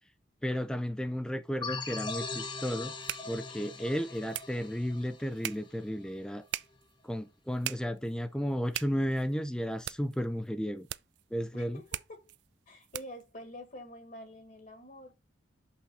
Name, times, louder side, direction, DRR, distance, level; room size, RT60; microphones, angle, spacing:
voice 1, 0.4-2.9 3.3-6.4 7.0-10.9 11.3-11.8, equal, 5° left, 0.5 m, -33 dB
sound 1, 1.6-6.1, left 4 dB, 25° left, 0.9 m, -40 dB
sound 2, 1.7-13.3, right 13 dB, 65° right, 0.4 m, -44 dB
voice 2, 11.5-12.3 12.7-15.2, left 1 dB, 45° left, 1.7 m, -47 dB
6.3 x 5.8 x 4.2 m
head